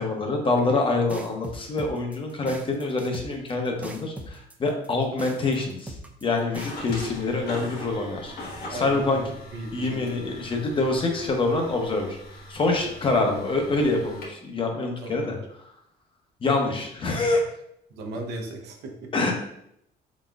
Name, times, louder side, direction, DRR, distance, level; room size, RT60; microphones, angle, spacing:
voice 1, 0.0-5.9 6.2-8.3 8.7-9.2 9.7-12.2 12.5-15.3 16.4-17.4 19.1-19.3, left 3 dB, 30° left, 3 dB, 0.8 m, -25 dB
sound 1, 1.1-7.1, right 1 dB, 10° right, 0.4 m, -39 dB
sound 2, 6.5-14.3, left 1 dB, 70° left, 1.3 m, -41 dB
voice 2, 8.7-10.1 15.0-15.4 17.9-19.1, right 2 dB, 80° right, 1 dB, 0.8 m, -36 dB
4.0 x 3.6 x 2.3 m, 0.75 s
cardioid pair, 110°, 17 cm